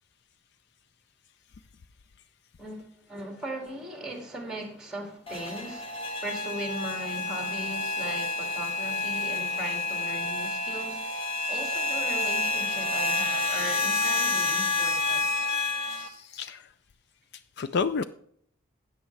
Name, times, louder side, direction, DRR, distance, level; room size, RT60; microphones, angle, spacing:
voice 1, 2.6-15.3, right 1 dB, 5° right, 2.2 m, -38 dB
sound 1, 5.3-16.1, left 3 dB, 25° left, 1.4 m, -29 dB
voice 2, 16.0-16.6 17.6-18.0, left 5 dB, 50° left, 0.4 m, -30 dB
13.0 x 9.1 x 3.2 m
head